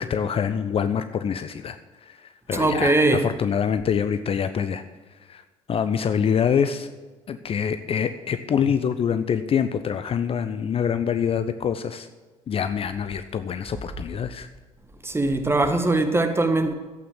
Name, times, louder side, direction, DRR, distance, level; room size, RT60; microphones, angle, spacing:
voice 1, 0.0-4.8 5.3-5.4 5.7-6.9 7.3-12.1 12.5-14.5, left 7 dB, 35° left, 0.7 m, -25 dB
voice 2, 2.5-3.3 15.0-16.7, right 2 dB, 15° right, 1.6 m, -21 dB
12.0 x 8.6 x 7.3 m
figure-of-eight pair, 55°, 17 cm